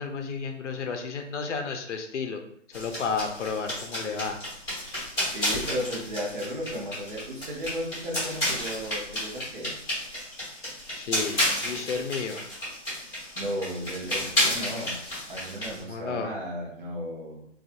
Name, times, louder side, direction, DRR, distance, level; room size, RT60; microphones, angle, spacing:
voice 1, 0.0-2.4 2.7-4.4 10.9-12.4 15.8-16.3, left 5 dB, 65° left, 5 dB, 0.5 m, -32 dB
sound 1, 2.7-15.8, left 1 dB, 5° left, 1.2 m, -32 dB
voice 2, 5.3-9.8 13.4-15.0 15.3-17.5, equal, 40° right, -2 dB, 0.8 m, -34 dB
2.5 x 2.4 x 2.5 m, 0.68 s
figure-of-eight pair, 150°, 38 cm